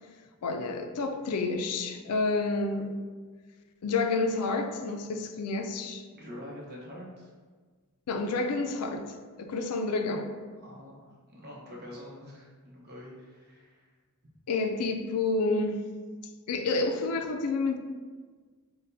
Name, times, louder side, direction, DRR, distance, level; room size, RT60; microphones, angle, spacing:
voice 1, 0.4-3.0 3.8-6.1 8.1-9.1 9.4-10.3 14.5-15.8 16.5-17.8, left 3 dB, 85° left, 0.4 m, -29 dB
voice 2, 6.1-7.3 10.6-13.9, left 1 dB, 45° right, 0.9 m, -45 dB
6.3 x 2.2 x 2.6 m
head